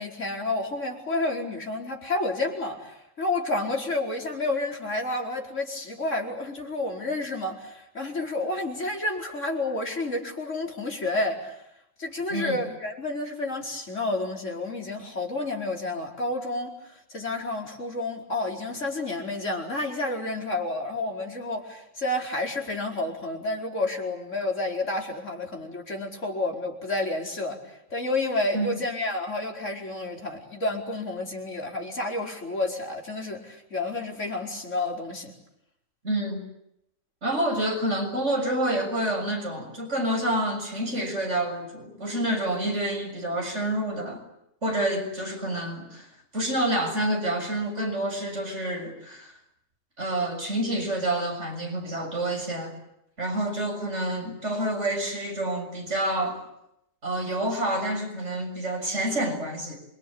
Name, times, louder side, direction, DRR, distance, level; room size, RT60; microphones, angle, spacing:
voice 1, 0.0-11.6 12.0-35.3, left 2 dB, 70° left, 0 dB, 5.2 m, -30 dB
voice 2, 36.0-36.4 37.2-44.2 44.6-46.1 46.3-49.3 50.0-52.8 53.2-56.4 57.0-59.8, right 1 dB, 65° right, 3 dB, 7.2 m, -28 dB
27.5 x 24.5 x 8.7 m, 0.80 s
omnidirectional pair, 1.3 m